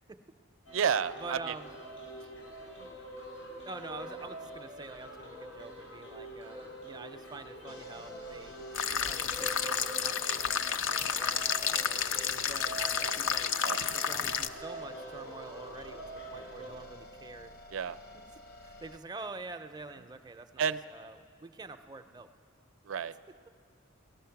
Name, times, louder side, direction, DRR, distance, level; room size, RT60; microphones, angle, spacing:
sound 1, 0.7-16.7, right 1 dB, 85° left, 4.5 m, -45 dB
voice 1, 0.7-1.5 2.8-2.9 13.6-13.8 17.7-18.0 20.6-20.8 22.8-23.1, right 7 dB, 75° right, 13 dB, 0.4 m, -31 dB
voice 2, 1.2-1.8 3.6-8.6 9.0-13.5 13.9-17.5 18.6-22.3, right 3 dB, 20° right, 7 dB, 0.5 m, -46 dB
sound 2, 7.7-19.0, left 2 dB, 50° left, 0.9 m, -52 dB
sound 3, 8.7-14.5, left 7 dB, 70° left, 0.5 m, -31 dB
18.5 x 13.0 x 5.8 m, 2.2 s
head